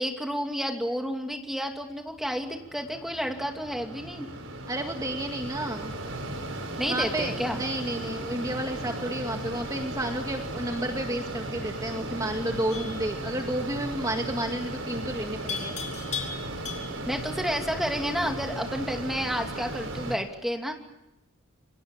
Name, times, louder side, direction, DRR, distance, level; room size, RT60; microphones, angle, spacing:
voice 1, 0.0-4.3 6.8-7.6 17.1-20.7, equal, ahead, 3 dB, 2.8 m, -30 dB
Mechanisms, 2.2-20.2, right 1 dB, 75° right, 4.9 m, -36 dB
voice 2, 4.7-5.9 6.9-15.7, right 1 dB, 15° right, 3 dB, 1.9 m, -31 dB
Livestock farm animals working animals, 12.7-13.0 15.5-17.1, left 7 dB, 35° left, 6.0 m, -36 dB
28.5 x 24.0 x 7.4 m, 0.91 s
head